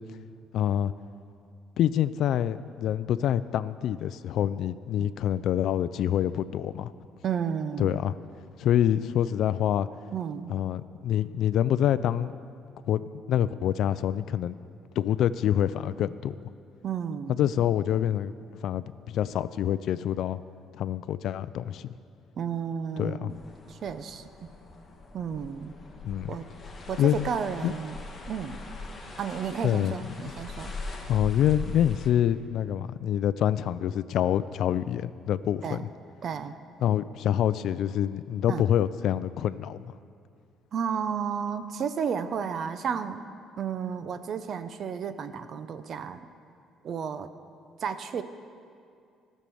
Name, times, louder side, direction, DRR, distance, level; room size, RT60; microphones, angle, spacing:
voice 1, 0.5-0.9 1.8-6.9 7.8-8.1 8.6-9.9 10.5-12.3 12.9-14.6 15.0-16.5 17.4-18.4 18.6-20.4 20.8-22.0 23.0-23.3 26.0-26.3 27.0-27.3 27.6-27.7 29.6-29.9 31.1-35.8 36.8-39.9, left 10 dB, 65° left, 15 dB, 0.4 m, -26 dB
voice 2, 7.2-8.0 10.1-10.6 16.8-17.4 22.4-23.4 23.7-24.5 25.1-25.7 26.3-26.5 26.9-28.0 28.3-28.7 29.2-30.7 35.6-35.8 36.2-36.5 38.5-38.7 40.7-43.3 43.6-46.3 46.8-47.3 47.8-48.2, right 7 dB, 50° right, 11 dB, 0.6 m, -32 dB
sound 1, 23.3-32.1, left 2 dB, 25° left, 1.6 m, -41 dB
16.0 x 6.5 x 6.9 m, 2.4 s
cardioid pair, 130°, 0 cm